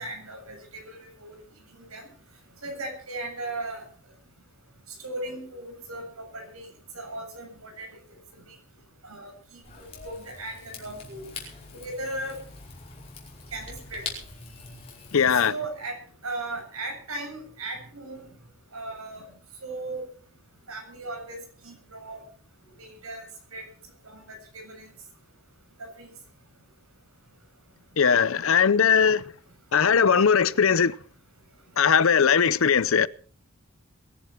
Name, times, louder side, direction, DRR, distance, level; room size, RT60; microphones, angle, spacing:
voice 1, 0.0-1.4 1.7-2.1 2.6-3.8 5.0-6.7 6.9-7.9 8.5-8.6 9.0-11.2 11.7-12.4 13.5-14.0 15.3-16.0 16.2-18.3 18.7-19.3 19.6-20.1 20.7-21.4 21.6-22.2 22.8-23.3 23.5-23.7 24.0-24.9 25.8-26.1, right 2 dB, 80° right, 7.5 m, -37 dB
Rain / Fire, 9.6-15.5, left 4 dB, 30° left, 5.2 m, -43 dB
voice 2, 15.1-15.5 28.0-29.2 29.7-30.9 31.8-33.1, left 6 dB, 70° left, 0.6 m, -20 dB
22.5 x 11.0 x 4.5 m
head